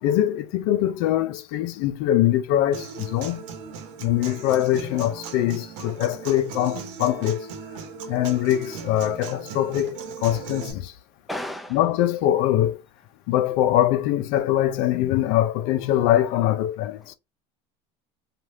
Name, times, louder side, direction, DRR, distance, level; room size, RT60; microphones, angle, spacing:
voice 1, 0.0-3.4 4.0-7.5 8.1-10.9 11.7-12.8 13.3-17.1, left 12 dB, 70° left, 0.5 m, -23 dB
Human voice / Acoustic guitar, 2.7-10.7, right 5 dB, 85° right, 1.0 m, -38 dB
voice 2, 11.3-11.8 17.0-17.1, left 1 dB, ahead, 0.5 m, -33 dB
3.2 x 2.4 x 2.7 m
supercardioid pair, 110°, 15 cm